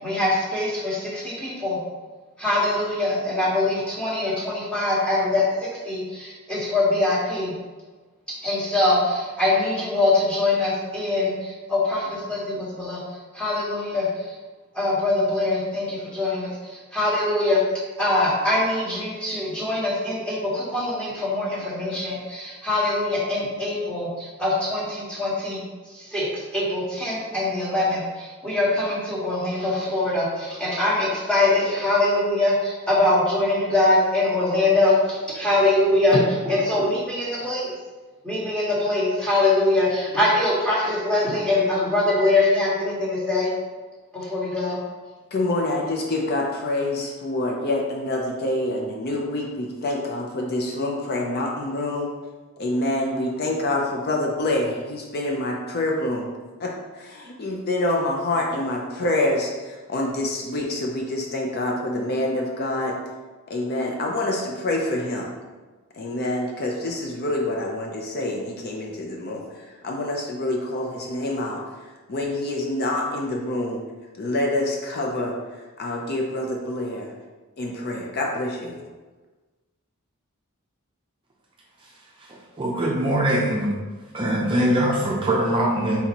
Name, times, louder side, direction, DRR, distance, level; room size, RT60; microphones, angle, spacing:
voice 1, 0.0-1.8 2.4-5.4 5.8-7.5 8.4-11.3 11.7-13.0 13.3-14.1 14.7-16.5 16.9-17.6 18.0-25.6 26.1-26.3 26.5-37.7 38.2-43.5 44.1-44.8, left 2 dB, 5° left, -7 dB, 1.3 m, -23 dB
voice 2, 45.3-52.1 52.6-56.3 56.6-63.0 63.5-65.3 65.9-71.6 72.1-73.8 74.2-77.1 77.6-78.8, left 1 dB, 45° left, 0 dB, 0.5 m, -26 dB
voice 3, 82.2-83.7 84.1-86.0, right 1 dB, 25° right, -3 dB, 0.5 m, -22 dB
4.1 x 4.1 x 2.9 m, 1.3 s
head